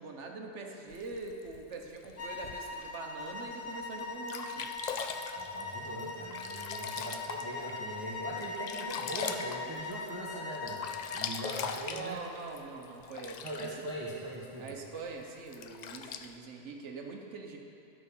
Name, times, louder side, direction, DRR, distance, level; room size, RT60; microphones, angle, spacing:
voice 1, 0.0-4.7 11.8-13.9 14.6-17.6, right 3 dB, 70° right, 2 dB, 1.3 m, -43 dB
Sink (filling or washing), 0.9-2.9 3.5-3.6 4.0-4.1 4.3-7.8 8.2-10.3 10.5-13.9 14.7-14.8 15.5-16.3, left 6 dB, 75° left, 0.4 m, -40 dB
sound 1, 2.2-11.3, left 4 dB, 40° left, 0.7 m, -41 dB
voice 2, 5.4-10.8 11.1-12.2 13.4-14.7, right 1 dB, 20° right, -6 dB, 1.0 m, -41 dB
12.0 x 6.2 x 5.5 m, 2.7 s
omnidirectional pair, 1.3 m